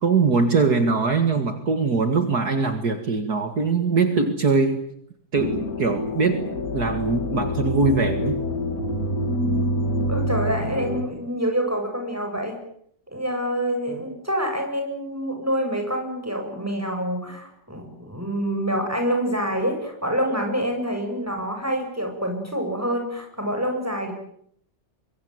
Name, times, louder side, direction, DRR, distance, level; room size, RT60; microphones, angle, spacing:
voice 1, 0.0-4.9 5.3-8.4, right 4 dB, 60° right, 7 dB, 2.5 m, -22 dB
sound 1, 5.3-11.0, left 1 dB, 50° left, 3.5 m, -26 dB
voice 2, 10.1-12.6 13.1-24.1, equal, 10° right, 3 dB, 7.9 m, -26 dB
24.0 x 23.5 x 9.5 m, 0.70 s
omnidirectional pair, 2.0 m